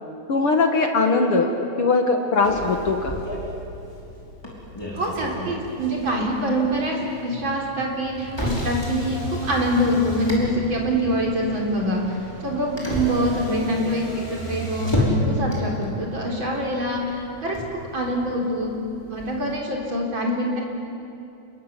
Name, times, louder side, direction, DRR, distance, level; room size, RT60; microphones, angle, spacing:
voice 1, 0.3-1.5 1.8-3.2, left 3 dB, 55° left, 4 dB, 1.6 m, -20 dB
Motor vehicle (road), 2.4-19.6, left 1 dB, 5° left, 4.9 m, -31 dB
voice 2, 4.9-14.0 14.3-17.6 17.9-18.7 19.1-20.6, equal, 30° right, -1 dB, 4.3 m, -25 dB
29.0 x 22.0 x 8.4 m, 2.7 s
omnidirectional pair, 4.4 m